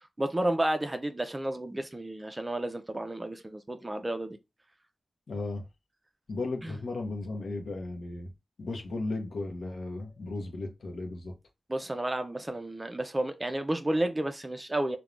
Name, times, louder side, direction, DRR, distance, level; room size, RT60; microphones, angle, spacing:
voice 1, 0.2-4.4 6.6-6.8 11.7-15.0, right 1 dB, 20° right, 0.3 m, -31 dB
voice 2, 5.3-5.6 6.3-8.3 8.6-11.3, left 2 dB, 70° left, 0.6 m, -35 dB
3.1 x 2.1 x 2.4 m
wide cardioid pair, 125°, 0 cm